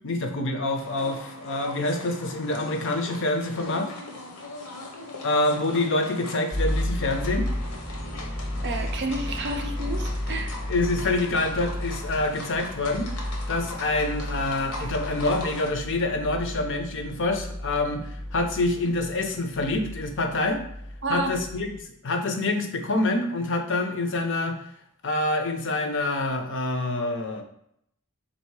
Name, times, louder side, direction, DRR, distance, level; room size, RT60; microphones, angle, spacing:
voice 1, 0.0-3.9 5.2-7.5 10.7-13.1 13.5-20.6 21.1-21.7 22.0-24.6 25.0-27.4, left 2 dB, 55° left, 5 dB, 0.6 m, -26 dB
sound 1, 0.7-15.7, left 2 dB, 80° left, 0.9 m, -40 dB
sound 2, 6.5-21.8, left 1 dB, 10° left, 0.5 m, -33 dB
voice 2, 8.6-10.6 21.0-21.4, right 2 dB, 50° right, 6 dB, 0.5 m, -30 dB
3.7 x 2.7 x 4.6 m, 0.72 s
head